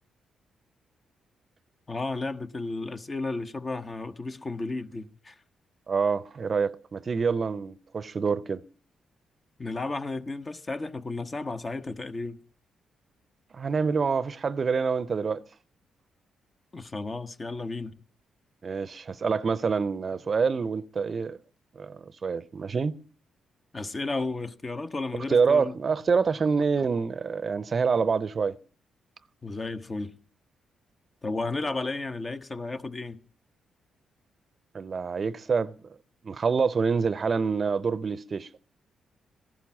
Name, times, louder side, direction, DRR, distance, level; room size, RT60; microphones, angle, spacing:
voice 1, 1.9-5.3 9.6-12.4 16.7-17.9 23.7-25.7 29.4-30.2 31.2-33.2, left 3 dB, 35° left, 1.0 m, -33 dB
voice 2, 5.9-8.6 13.5-15.4 18.6-21.4 21.7-23.0 25.3-28.6 34.7-35.7 36.2-38.5, right 5 dB, 45° right, 0.6 m, -26 dB
15.0 x 11.5 x 7.3 m
supercardioid pair, 65°, 0 cm